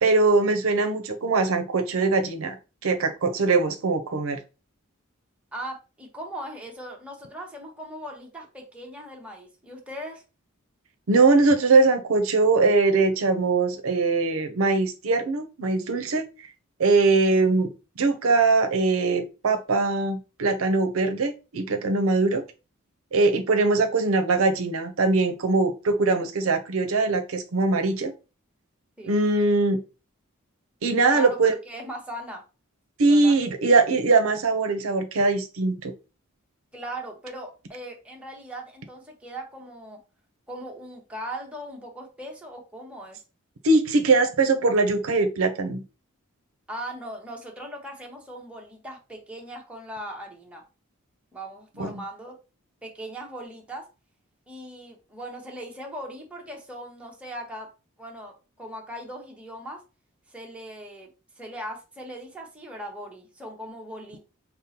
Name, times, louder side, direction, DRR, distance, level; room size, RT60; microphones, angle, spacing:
voice 1, 0.0-2.6 2.8-4.4 11.1-16.2 16.8-17.7 18.0-22.4 23.1-28.1 29.1-29.8 30.8-31.5 33.0-35.9 43.6-45.8 51.8-51.9, right 3 dB, 75° right, 0.6 m, -21 dB
voice 2, 5.5-10.2 29.0-29.3 31.1-32.4 33.1-33.4 36.7-40.0 40.5-43.2 46.7-50.6 51.3-52.4 52.8-53.9 54.5-57.7 58.0-59.8 60.3-61.1 61.4-64.2, right 1 dB, 5° right, 0.8 m, -39 dB
5.2 x 2.0 x 2.8 m
head